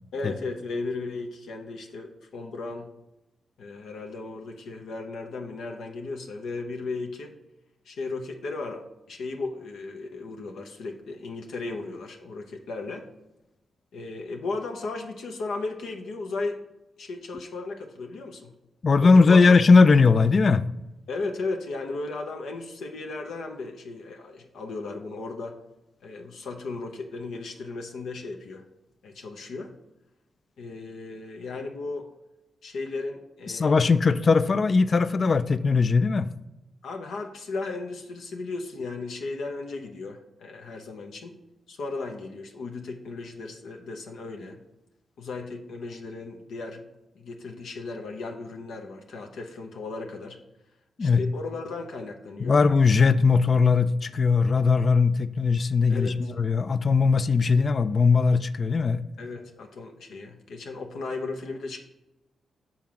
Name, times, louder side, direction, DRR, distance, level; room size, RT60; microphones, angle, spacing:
voice 1, 0.1-2.9 3.6-7.3 7.8-13.1 13.9-16.6 17.0-18.5 19.0-19.5 21.1-25.6 26.0-28.6 29.0-29.7 30.6-32.1 32.6-33.7 34.0-34.1 36.8-41.3 41.7-44.6 45.2-46.8 47.1-50.4 51.0-52.6 55.9-56.3 59.2-61.8, left 3 dB, 80° left, 3 dB, 0.7 m, -35 dB
voice 2, 18.8-20.6 33.5-36.3 51.0-51.2 52.4-59.0, left 4 dB, 50° left, 14 dB, 0.3 m, -19 dB
5.7 x 3.8 x 5.7 m, 0.95 s
supercardioid pair, 50°, 0 cm